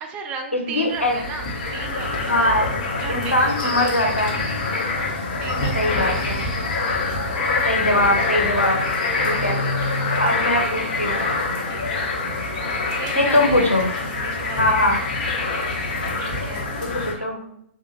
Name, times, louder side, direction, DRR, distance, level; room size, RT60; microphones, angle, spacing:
voice 1, 0.0-2.4 3.0-4.2 5.4-6.6 9.6-10.5 11.7-12.1 13.0-13.7 14.0-15.0 16.1-17.6, right 5 dB, 20° right, 4 dB, 0.4 m, -36 dB
voice 2, 0.5-1.2 2.3-2.7 3.1-4.3 5.7-6.4 7.6-8.8 9.2-9.6 10.2-11.2 13.1-13.9 14.6-15.0 17.2-17.3, left 1 dB, 85° left, 2 dB, 0.7 m, -21 dB
sound 1, 0.9-17.1, left 3 dB, 35° left, 0.9 m, -25 dB
3.3 x 2.4 x 3.0 m, 0.69 s
figure-of-eight pair, 125°, 7 cm